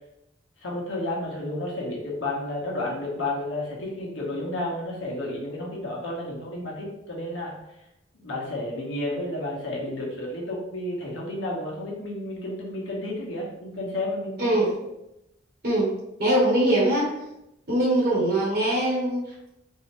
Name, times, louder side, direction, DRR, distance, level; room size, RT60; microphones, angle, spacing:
voice 1, 0.6-7.5 8.1-14.7, left 1 dB, 85° left, -4 dB, 1.2 m, -31 dB
voice 2, 14.4-14.8 15.6-15.9 16.2-17.1 17.7-19.5, right 1 dB, 55° right, -5 dB, 1.2 m, -22 dB
3.9 x 2.8 x 3.3 m, 0.87 s
head